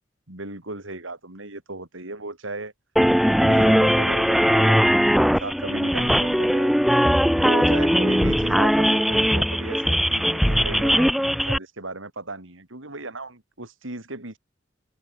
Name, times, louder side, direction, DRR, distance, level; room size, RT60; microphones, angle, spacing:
voice 1, 0.3-2.7 3.3-6.7 7.3-14.4, right 2 dB, 85° right, 4.4 m, -36 dB
sound 1, 3.0-11.6, equal, ahead, 1.0 m, -19 dB
head